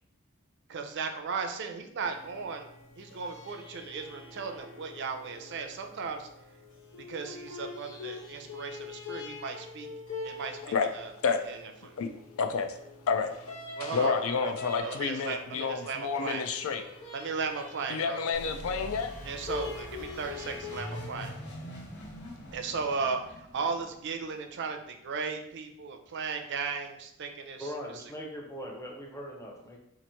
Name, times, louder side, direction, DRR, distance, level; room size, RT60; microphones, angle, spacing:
voice 1, 0.7-2.7 3.0-6.3 7.0-9.9 10.2-10.6 10.9-11.1 11.5-11.6 11.8-12.0 13.8-14.5 14.8-16.4 17.1-18.2 19.2-21.4 22.5-27.7, right 5 dB, 55° right, 5 dB, 0.4 m, -36 dB
sound 1, 2.0-21.3, left 4 dB, 90° left, 1.1 m, -44 dB
voice 2, 12.4-12.8 13.1-13.5 13.8-16.8 17.9-19.1, left 5 dB, 75° left, 7 dB, 0.4 m, -29 dB
sound 2, 18.3-24.9, equal, 55° left, 0.8 m, -44 dB
voice 3, 27.6-29.8, equal, 15° left, -1 dB, 0.7 m, -40 dB
2.9 x 2.5 x 4.3 m, 0.77 s
head